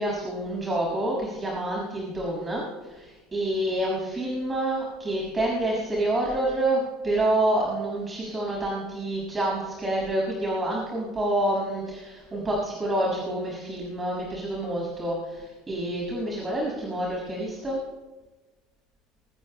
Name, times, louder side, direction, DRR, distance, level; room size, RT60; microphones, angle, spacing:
voice 1, 0.0-17.8, right 1 dB, 20° right, -3 dB, 6.4 m, -28 dB
24.5 x 19.5 x 2.3 m, 1.2 s
figure-of-eight pair, 70°, 0 cm